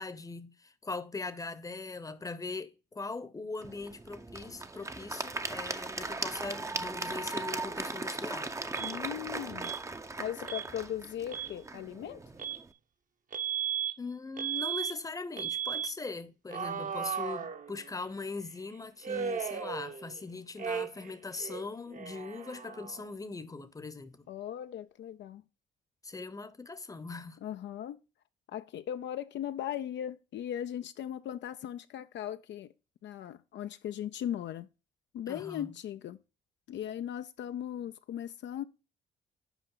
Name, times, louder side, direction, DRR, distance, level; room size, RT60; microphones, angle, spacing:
voice 1, 0.0-8.5 14.0-24.3 26.0-27.4 35.3-35.7, left 3 dB, 15° left, 0.8 m, -40 dB
Applause / Crowd, 3.6-12.7, right 3 dB, 15° right, 0.6 m, -38 dB
Alarm, 8.7-9.0 9.6-9.8 10.5-10.7 11.2-11.5 12.4-12.6 13.3-13.9 14.4-14.9 15.4-15.9 16.5-18.0 19.0-20.2 20.6-21.1 21.4-23.1, right 8 dB, 40° right, 0.9 m, -36 dB
voice 2, 8.8-9.7 10.2-12.2 24.3-25.4 27.4-28.0 28.5-32.7 33.0-34.7 35.1-36.2 36.7-38.6, left 10 dB, 65° left, 0.5 m, -38 dB
8.1 x 4.9 x 3.8 m
cardioid pair, 90°, 20 cm